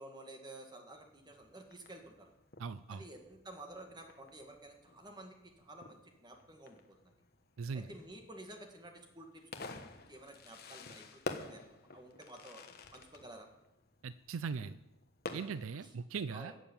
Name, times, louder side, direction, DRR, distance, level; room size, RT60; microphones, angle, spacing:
voice 1, 0.0-2.3 2.9-7.2 7.7-9.4 9.9-11.6 11.9-12.6 12.9-13.5 15.8-15.9 16.3-16.6, right 1 dB, 20° right, 3 dB, 1.8 m, -52 dB
Fireworks, 0.9-15.9, left 3 dB, 45° left, 1.2 m, -50 dB
voice 2, 2.6-3.0 7.6-7.9 14.0-14.8 15.3-16.5, right 5 dB, 70° right, 14 dB, 0.4 m, -39 dB
12.5 x 7.3 x 8.7 m, 0.91 s
head